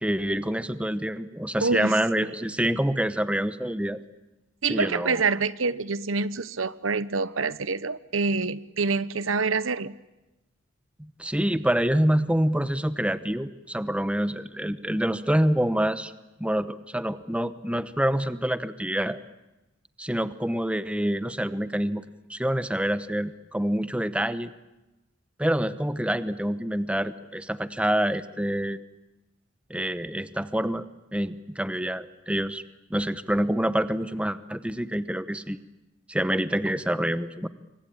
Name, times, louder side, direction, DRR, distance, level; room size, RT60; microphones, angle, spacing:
voice 1, 0.0-4.0 4.7-5.2 11.0-16.1 16.4-19.2 20.0-22.0 22.3-24.5 25.4-28.8 29.7-30.8 31.1-32.6 32.9-35.6 36.1-37.5, right 1 dB, 5° right, 12 dB, 0.9 m, -26 dB
voice 2, 1.6-2.3 4.6-10.0, right 4 dB, 90° right, 16 dB, 1.0 m, -26 dB
27.5 x 24.5 x 8.9 m, 1.0 s
head